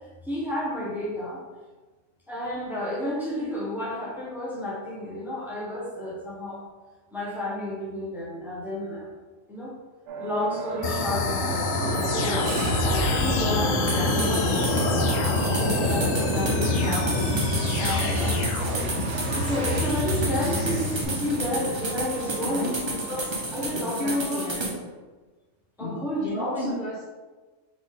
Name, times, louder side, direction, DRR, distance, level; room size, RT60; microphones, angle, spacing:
voice 1, 0.2-1.4 2.3-6.6 7.1-9.1 9.5-9.7 10.2-14.8 15.3-17.3 17.8-18.4 19.3-24.6 25.8-26.7, left 1 dB, ahead, -5 dB, 0.9 m, -31 dB
sound 1, 10.1-23.9, right 3 dB, 70° right, 0.8 m, -32 dB
sound 2, 10.8-21.1, left 4 dB, 90° left, 1.0 m, -26 dB
sound 3, 13.9-24.7, right 2 dB, 30° right, 0.5 m, -32 dB
voice 2, 22.4-23.1 23.7-24.8 25.8-27.0, left 1 dB, 50° left, -4 dB, 0.7 m, -34 dB
4.0 x 3.3 x 3.5 m, 1.3 s
omnidirectional pair, 1.3 m